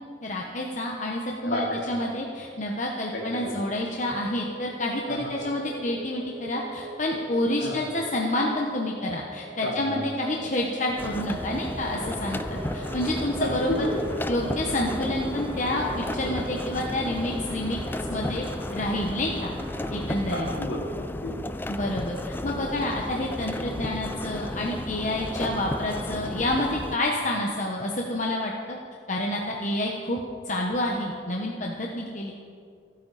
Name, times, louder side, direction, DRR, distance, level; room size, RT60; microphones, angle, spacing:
voice 1, 0.2-13.7 14.3-17.8 18.1-18.4 18.7-19.5 19.9-20.5 21.7-22.2 22.4-28.8 29.1-30.2 30.5-32.3, left 1 dB, 40° left, -1 dB, 1.2 m, -28 dB
voice 2, 1.4-1.8 3.1-3.5 5.1-5.3 7.6-7.8 9.6-10.4 13.4-14.5 20.2-21.5 22.5-22.7, left 1 dB, 70° left, -3 dB, 3.7 m, -31 dB
sound 1, 4.1-19.4, right 1 dB, 65° right, 1.4 m, -42 dB
sound 2, 11.0-27.0, left 1 dB, 10° left, 0.4 m, -34 dB
sound 3, 11.9-20.5, equal, 25° right, 3.2 m, -39 dB
28.5 x 9.6 x 4.2 m, 2.2 s
head